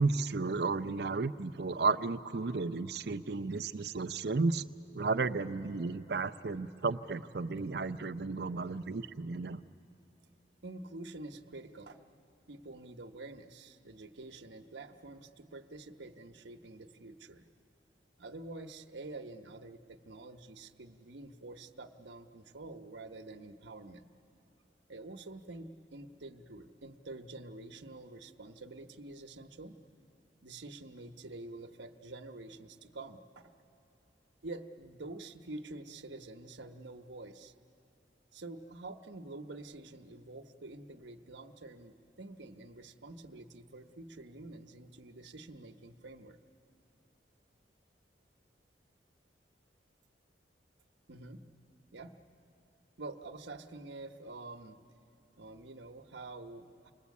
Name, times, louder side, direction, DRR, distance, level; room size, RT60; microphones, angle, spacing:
voice 1, 0.0-4.6 4.9-9.6, right 4 dB, 65° right, 11 dB, 0.6 m, -33 dB
voice 2, 10.6-12.0 12.5-17.5 18.2-24.1 24.9-29.8 30.4-33.5 34.4-37.5 38.3-46.4 51.1-51.4 51.9-52.1 53.0-54.8 55.4-56.9, right 2 dB, 90° right, 5 dB, 1.0 m, -47 dB
28.5 x 20.5 x 8.4 m, 2.7 s
head